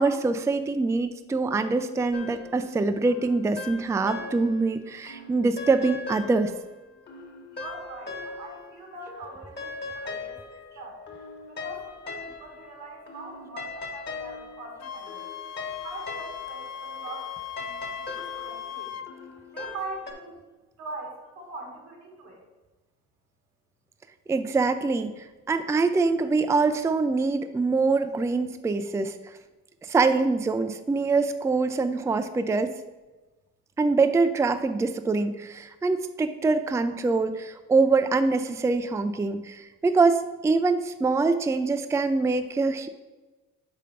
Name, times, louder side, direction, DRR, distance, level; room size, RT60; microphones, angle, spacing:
voice 1, 0.0-6.5 24.3-29.2 29.8-32.8 33.8-42.9, right 3 dB, 10° right, 9 dB, 0.4 m, -24 dB
sound 1, 2.1-4.7 5.1-8.8 9.1-20.1, left 4 dB, 35° left, 1.4 m, -40 dB
voice 2, 7.5-10.4 10.8-11.0 11.5-15.2 15.8-17.3 17.6-19.0 19.5-20.4 20.8-22.5, right 2 dB, 85° right, 1 dB, 2.0 m, -42 dB
Wind instrument woodwind instrument, 14.8-19.1, left 9 dB, 60° left, 0.5 m, -38 dB
5.6 x 5.1 x 5.1 m, 1.2 s
cardioid pair, 90°, 30 cm